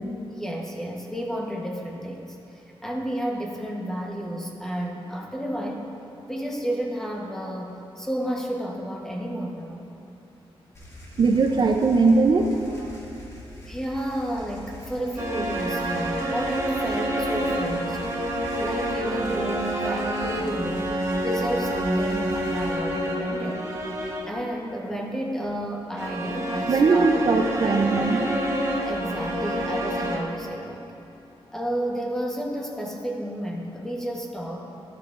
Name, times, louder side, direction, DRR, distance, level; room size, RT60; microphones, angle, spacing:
voice 1, 0.3-5.9 6.3-9.8 13.7-18.1 18.6-20.9 21.2-23.6 24.3-27.1 28.8-30.8 31.5-34.6, equal, 5° left, -1 dB, 1.1 m, -31 dB
sound 1, 10.7-22.7, left 1 dB, 30° left, 2.2 m, -43 dB
voice 2, 11.2-13.0 26.7-28.4, right 3 dB, 45° right, 3 dB, 0.5 m, -20 dB
sound 2, 15.2-24.4 26.0-30.2, right 1 dB, 30° right, 1.1 m, -28 dB
13.0 x 11.5 x 2.5 m, 2.9 s
wide cardioid pair, 160°, 10 cm